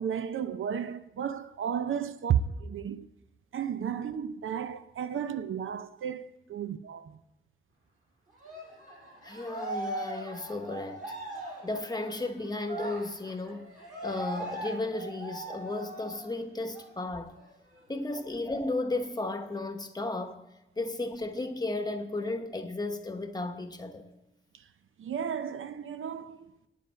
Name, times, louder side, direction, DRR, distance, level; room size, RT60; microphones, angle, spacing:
voice 1, 0.0-3.1 3.5-7.2 24.5-24.6 25.0-26.5, right 8 dB, 75° right, 0.6 m, -33 dB
Cheering, 8.4-16.4 16.7-16.9 17.3-18.3, right 1 dB, 40° right, 5.4 m, -40 dB
voice 2, 9.2-11.2 11.6-13.7 14.0-17.3 17.9-20.4 20.8-24.1, left 2 dB, 20° left, 1.0 m, -34 dB
9.2 x 7.7 x 7.5 m
wide cardioid pair, 135°, 21 cm